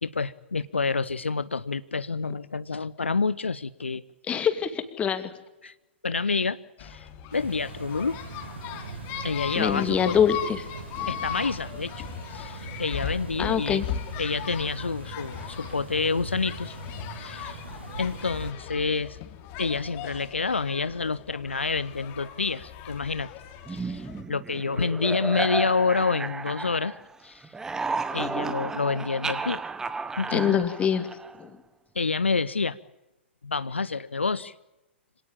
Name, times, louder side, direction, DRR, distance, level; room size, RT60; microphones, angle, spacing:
voice 1, 0.0-4.0 5.6-5.7 6.0-8.2 9.2-10.2 11.1-12.0 12.3-13.8 14.2-16.7 17.2-17.6 18.0-19.2 19.6-23.3 23.7-26.9 27.2-27.5 28.1-29.6 30.2-30.6 31.9-32.8 33.4-34.5, left 4 dB, 80° left, 16 dB, 0.7 m, -28 dB
voice 2, 4.3-5.3 9.6-10.7 11.0-11.1 13.4-13.9 30.3-31.1 31.4-31.5, left 8 dB, 20° left, 10 dB, 2.4 m, -25 dB
sound 1, 6.8-24.2, left 9 dB, 35° left, 3.0 m, -38 dB
sound 2, 7.3-18.5, right 4 dB, 65° right, 2.7 m, -41 dB
sound 3, 23.7-27.2 27.4-31.5, right 4 dB, 10° right, 1.3 m, -33 dB
26.0 x 18.0 x 8.7 m, 1.0 s
figure-of-eight pair, 110°, 6 cm